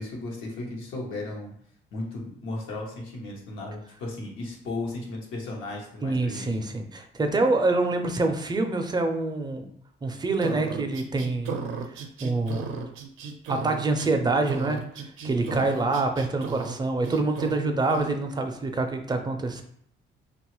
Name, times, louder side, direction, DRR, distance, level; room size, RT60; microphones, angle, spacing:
voice 1, 0.0-1.5 1.9-6.6, left 2 dB, 90° left, -1 dB, 0.8 m, -35 dB
voice 2, 6.0-9.6 10.0-11.5 12.2-12.6 13.5-14.8 15.2-19.6, right 3 dB, 20° right, 5 dB, 0.4 m, -26 dB
sound 1, 10.4-14.1 14.5-16.8 17.0-17.6 17.9-18.1, right 5 dB, 85° right, 0.4 m, -35 dB
2.8 x 2.3 x 3.0 m, 0.65 s
cardioid pair, 90°, 20 cm